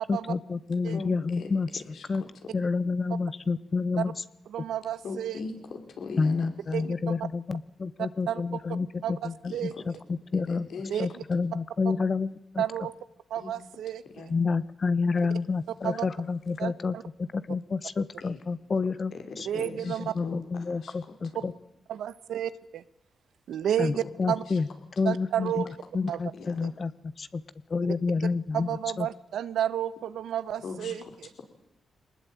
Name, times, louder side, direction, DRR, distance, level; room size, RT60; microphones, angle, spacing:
voice 1, 0.1-1.7 2.1-2.2 2.5-4.1 6.2-10.7 11.0-12.6 14.3-19.5 19.8-21.5 23.8-24.7 25.0-26.9 27.2-27.4 27.7-29.1, left 4 dB, 40° left, 15 dB, 1.2 m, -29 dB
voice 2, 0.9-2.0 2.4-2.5 5.0-6.5 6.8-6.9 9.4-9.8 10.3-11.0 13.4-13.5 14.1-14.3 15.9-16.3 18.2-18.4 19.1-21.5 24.0-24.1 24.5-24.6 26.3-26.7 30.6-31.1, left 4 dB, 70° left, 5 dB, 5.2 m, -41 dB
voice 3, 4.5-5.4 6.7-6.9 8.3-8.4 9.0-9.7 10.9-11.1 12.6-12.9 13.3-14.3 15.8-16.0 16.6-17.0 19.4-20.1 21.3-21.5 21.9-22.8 23.5-24.4 25.0-25.7 26.1-26.2 28.5-31.0, right 10 dB, 85° right, 15 dB, 1.2 m, -31 dB
23.5 x 20.0 x 9.2 m, 0.82 s
cardioid pair, 90°, 0 cm